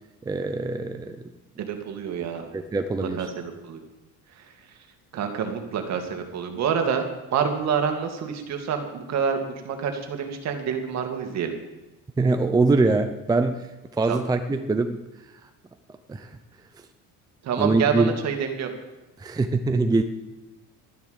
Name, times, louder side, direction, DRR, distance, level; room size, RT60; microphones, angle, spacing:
voice 1, 0.3-1.3 2.5-3.3 12.2-13.7 13.9-15.0 16.1-16.4 17.6-18.1 19.2-20.0, right 3 dB, 10° right, 7 dB, 0.6 m, -23 dB
voice 2, 1.6-2.4 3.0-3.8 5.1-7.0 7.3-11.5 14.1-14.2 17.4-18.7, right 7 dB, 50° right, 5 dB, 2.4 m, -27 dB
13.0 x 10.5 x 8.0 m, 1.1 s
cardioid pair, 160°, 35 cm